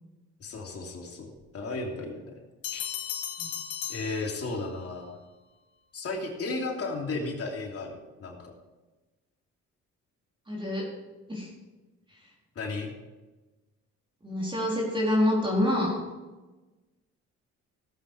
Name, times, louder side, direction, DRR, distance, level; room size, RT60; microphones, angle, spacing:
voice 1, 0.4-2.3 2.7-2.9 3.9-5.2 5.9-8.5 12.5-12.9, left 3 dB, 50° left, -1 dB, 3.2 m, -34 dB
sound 1, 2.6-4.9, left 10 dB, 90° left, 2.3 m, -36 dB
voice 2, 10.5-10.9 11.3-11.5 14.2-16.0, left 1 dB, 15° right, -4 dB, 4.1 m, -26 dB
16.5 x 8.2 x 4.9 m, 1.2 s
cardioid pair, 90°, 30 cm